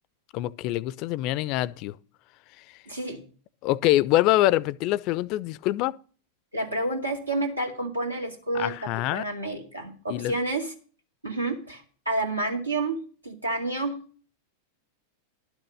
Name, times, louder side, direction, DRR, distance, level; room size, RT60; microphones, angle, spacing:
voice 1, 0.3-2.0 3.6-6.0 8.6-9.3 10.1-10.3, left 16 dB, 40° left, 0.4 m, -25 dB
voice 2, 2.9-3.2 6.5-10.7 11.2-13.0 13.2-14.0, right 2 dB, 85° right, 2.2 m, -29 dB
11.5 x 6.3 x 6.5 m
figure-of-eight pair, 90°, 0 cm